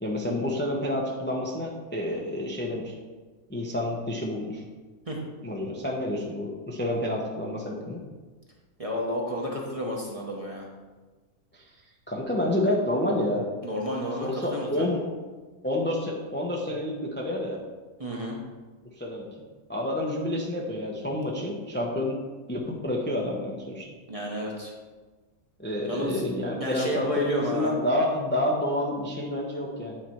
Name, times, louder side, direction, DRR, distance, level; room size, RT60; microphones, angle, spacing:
voice 1, 0.0-2.9 3.5-4.6 5.4-8.0 11.5-11.6 12.1-13.5 14.2-15.1 15.6-17.6 19.0-19.3 19.7-22.2 22.5-23.9 25.6-30.0, left 1 dB, 10° left, -2 dB, 0.7 m, -29 dB
voice 2, 8.8-10.7 13.6-14.9 18.0-18.4 24.1-24.7 25.8-26.2 26.6-27.7, equal, 25° right, -2 dB, 1.1 m, -31 dB
9.1 x 4.3 x 4.5 m, 1.3 s
omnidirectional pair, 1.5 m